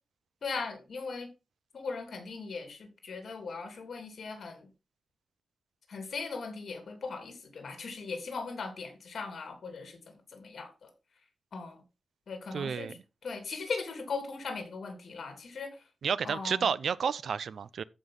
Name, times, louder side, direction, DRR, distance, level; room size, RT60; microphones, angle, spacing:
voice 1, 0.4-1.3 1.7-4.7 5.9-10.9 11.5-11.8 12.3-15.8 16.2-16.7, left 4 dB, 60° left, 3.0 m, -39 dB
voice 2, 12.5-12.9 16.0-17.8, right 7 dB, 85° right, 0.5 m, -31 dB
14.5 x 5.5 x 3.8 m
wide cardioid pair, 180°, 0 cm